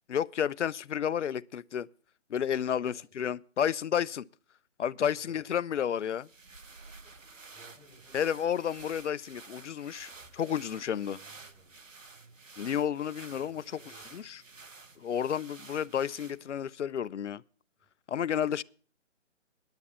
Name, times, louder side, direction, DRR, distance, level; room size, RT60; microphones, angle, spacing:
voice 1, 0.1-1.9 2.3-4.3 4.8-6.3 8.1-11.2 12.6-13.8 14.1-14.4 15.0-17.4 18.1-18.6, left 9 dB, 70° left, 0.5 m, -31 dB
sound 1, 6.0-16.7, right 4 dB, 85° right, 1.2 m, -51 dB
voice 2, 7.5-8.3 11.1-11.7 13.3-14.0, right 2 dB, ahead, 6.3 m, -58 dB
10.5 x 8.3 x 6.9 m
figure-of-eight pair, 150°, 38 cm